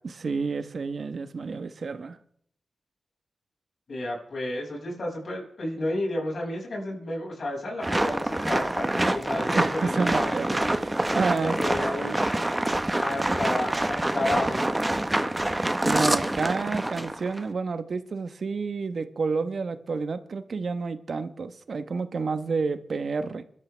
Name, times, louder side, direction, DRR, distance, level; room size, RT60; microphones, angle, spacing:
voice 1, 0.0-2.2 9.6-11.6 15.8-23.4, right 4 dB, 70° right, 1.2 m, -29 dB
voice 2, 3.9-10.7 11.4-12.5 13.0-14.7, left 1 dB, 70° left, 6.4 m, -32 dB
sound 1, 7.8-17.4, right 1 dB, 20° right, 1.2 m, -26 dB
27.0 x 12.5 x 3.4 m
cardioid pair, 45°, 0 cm